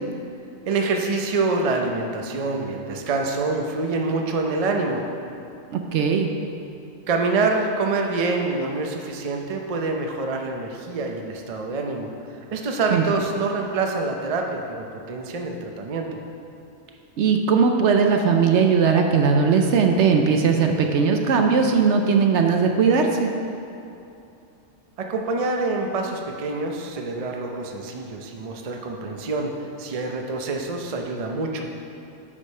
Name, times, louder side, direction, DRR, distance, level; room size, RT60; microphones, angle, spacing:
voice 1, 0.7-5.0 7.1-16.2 25.0-29.5 29.8-31.6, right 3 dB, 40° right, 2 dB, 0.6 m, -26 dB
voice 2, 5.7-6.3 12.9-13.0 17.2-23.3, right 5 dB, 70° right, 4 dB, 0.9 m, -19 dB
8.4 x 5.1 x 5.4 m, 2.8 s
omnidirectional pair, 1.3 m